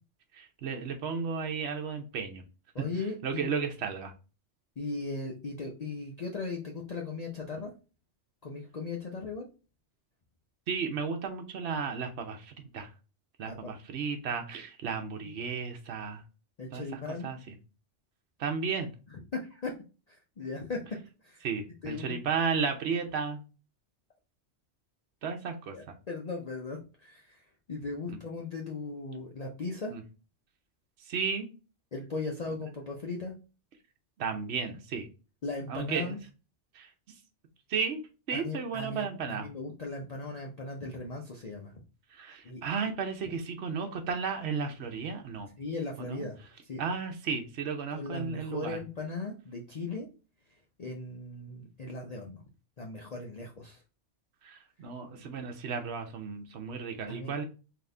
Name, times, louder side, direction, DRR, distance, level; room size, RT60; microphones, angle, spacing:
voice 1, 0.3-2.4 3.2-4.1 10.7-12.9 13.4-16.2 16.7-17.5 18.4-18.9 21.4-23.4 25.2-25.7 28.1-28.2 29.9-30.0 31.1-31.5 34.2-35.1 35.7-36.2 36.7-36.9 37.7-38.0 38.3-39.5 42.1-45.5 46.0-46.3 46.8-48.8 54.4-57.4, right 5 dB, 70° right, 4 dB, 1.0 m, -34 dB
voice 2, 2.7-3.6 4.8-7.7 8.4-9.5 13.5-13.7 16.6-17.3 19.1-19.7 20.1-20.8 21.2-21.5 21.8-22.1 25.7-27.4 27.7-29.9 31.9-33.3 35.4-36.2 38.3-41.7 42.4-42.6 45.6-46.4 46.7-46.8 47.9-50.1 50.8-52.4 52.8-53.8 57.1-57.3, left 3 dB, 45° left, -1 dB, 0.6 m, -38 dB
4.0 x 2.8 x 3.2 m, 0.33 s
omnidirectional pair, 1.2 m